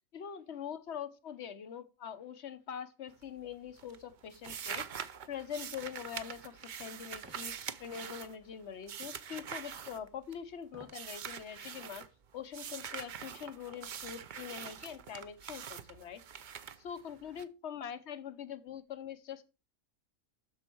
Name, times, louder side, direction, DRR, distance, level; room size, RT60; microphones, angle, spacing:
voice 1, 0.1-12.1 12.3-16.2 16.8-19.5, left 8 dB, 60° left, 12 dB, 1.1 m, -44 dB
sound 1, 3.1-3.5 3.8-10.5 10.9-12.1 12.5-17.4, right 8 dB, 50° right, 0.6 m, -44 dB
sound 2, 7.2-7.5 9.0-9.2 10.6-11.1 11.5-11.6, right 1 dB, 10° right, 1.6 m, -55 dB
12.5 x 4.4 x 4.5 m, 0.30 s
omnidirectional pair, 1.4 m